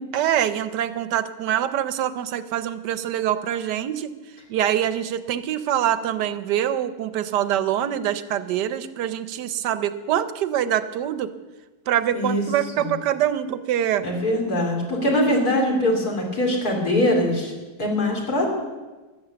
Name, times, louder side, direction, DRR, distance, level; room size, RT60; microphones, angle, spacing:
voice 1, 0.1-4.1 4.5-11.3 11.9-14.0, right 11 dB, 70° right, 13 dB, 1.3 m, -24 dB
voice 2, 14.0-17.5 17.8-18.5, left 1 dB, 55° left, -1 dB, 3.2 m, -22 dB
15.0 x 10.0 x 6.9 m, 1.2 s
omnidirectional pair, 2.0 m